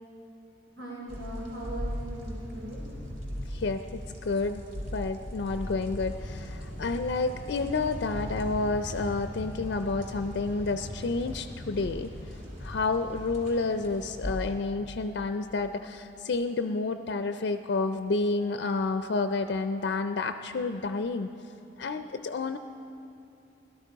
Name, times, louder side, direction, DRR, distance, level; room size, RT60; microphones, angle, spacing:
voice 1, 0.8-2.8 7.9-8.0, right 1 dB, 80° right, -4 dB, 3.6 m, -39 dB
sound 1, 1.1-14.4, equal, 50° right, 2.8 m, -39 dB
voice 2, 3.5-4.6 4.9-12.1 12.6-21.3 21.8-22.6, left 3 dB, 60° left, 8 dB, 0.4 m, -30 dB
17.0 x 12.5 x 4.6 m, 2.7 s
head